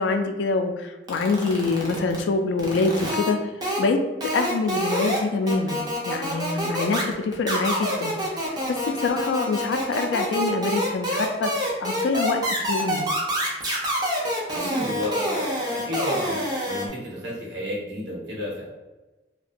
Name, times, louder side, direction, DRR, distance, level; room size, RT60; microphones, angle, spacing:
voice 1, 0.0-3.4 3.8-4.0 4.3-8.1 8.7-11.5 11.8-13.1, left 3 dB, 75° left, 6 dB, 0.3 m, -25 dB
sound 1, 1.1-2.2 2.6-3.3 3.6-3.8 4.2-5.2 5.5-16.9, equal, 20° right, 0.5 m, -27 dB
voice 2, 14.5-16.4 16.7-18.7, left 1 dB, 90° right, -5 dB, 1.0 m, -31 dB
2.7 x 2.2 x 2.5 m, 1.1 s
head